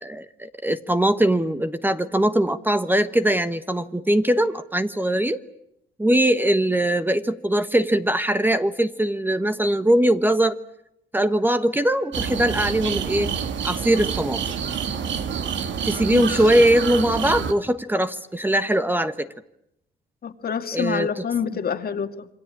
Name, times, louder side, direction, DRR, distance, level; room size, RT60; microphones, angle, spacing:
voice 1, 0.0-5.4 6.0-10.6 11.1-13.3 13.6-14.4 15.8-19.3 20.7-21.2, right 1 dB, 10° right, 11 dB, 1.2 m, -21 dB
sound 1, 12.1-17.5, right 7 dB, 70° right, 2.5 m, -27 dB
voice 2, 20.2-22.3, left 7 dB, 50° left, 8 dB, 2.2 m, -27 dB
28.0 x 24.0 x 8.7 m, 0.80 s
cardioid pair, 90°, 20 cm